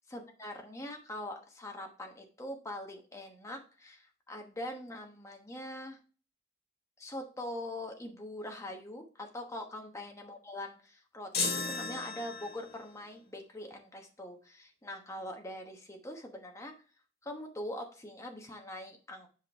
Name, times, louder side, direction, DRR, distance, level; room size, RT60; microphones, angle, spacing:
voice 1, 0.1-6.0 7.0-16.7 17.2-19.3, left 1 dB, 15° left, 3 dB, 1.1 m, -43 dB
sound 1, 11.3-12.8, left 4 dB, 50° left, 1.8 m, -34 dB
7.6 x 5.2 x 3.4 m, 0.37 s
head